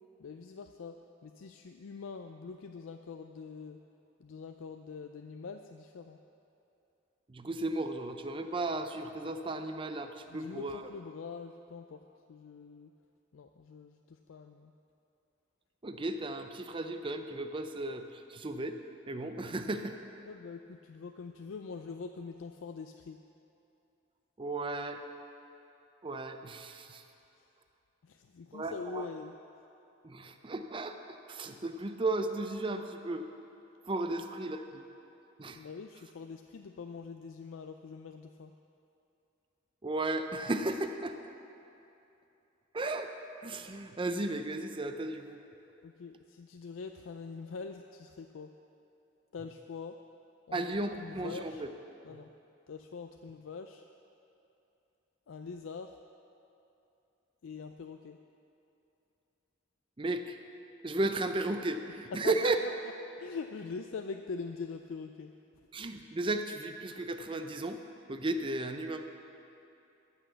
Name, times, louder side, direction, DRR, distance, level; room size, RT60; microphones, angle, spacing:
voice 1, 0.2-1.0 1.2-3.8 4.2-6.2 10.3-12.0 12.3-12.9 13.3-14.7 20.3-23.2 28.0-29.3 34.1-34.2 35.5-38.5 45.8-48.5 49.3-50.0 50.5-50.6 50.9-51.6 52.0-52.3 52.7-53.8 55.3-55.9 57.4-58.2 62.1-62.7 63.2-65.3, left 5 dB, 90° left, 6 dB, 0.4 m, -43 dB
voice 2, 7.3-10.9 15.8-18.8 19.1-20.0 24.4-25.0 26.0-27.0 28.5-29.1 30.0-33.2 33.8-34.8 35.4-35.6 39.8-41.2 42.7-43.1 43.4-45.4 50.5-51.7 52.1-52.2 60.0-60.4 60.8-62.6 65.7-67.8 68.1-69.1, right 2 dB, 25° right, 7 dB, 0.5 m, -35 dB
13.5 x 6.2 x 6.8 m, 2.8 s
head